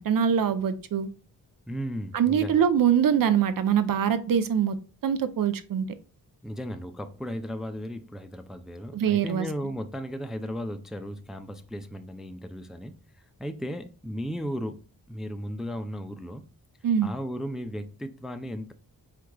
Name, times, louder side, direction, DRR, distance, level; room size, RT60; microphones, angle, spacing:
voice 1, 0.0-1.1 2.1-4.8 5.0-5.9 8.9-9.5 16.8-17.1, right 8 dB, 65° right, 0.6 m, -23 dB
voice 2, 1.7-2.6 6.4-12.9 13.4-14.8 15.1-16.4 17.0-18.7, equal, ahead, 0.3 m, -35 dB
4.6 x 3.6 x 2.2 m
wide cardioid pair, 100°, 37 cm